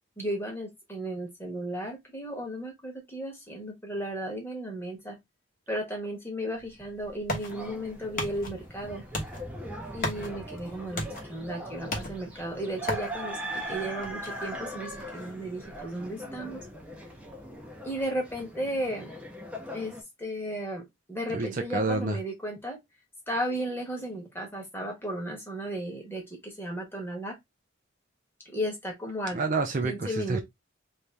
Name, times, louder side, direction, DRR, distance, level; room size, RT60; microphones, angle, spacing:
voice 1, 0.2-5.2 5.7-9.0 9.9-16.6 17.8-19.1 19.7-19.9 20.2-20.8 21.1-22.8 23.3-27.4 28.4-29.4 29.8-30.4, equal, 10° left, 1.2 m, -34 dB
sound 1, 6.6-18.0, left 1 dB, 45° left, 1.1 m, -40 dB
sound 2, 7.5-20.0, equal, 5° right, 0.7 m, -40 dB
voice 2, 21.3-22.2 29.3-30.4, right 3 dB, 40° right, 0.5 m, -28 dB
3.1 x 2.7 x 3.3 m
head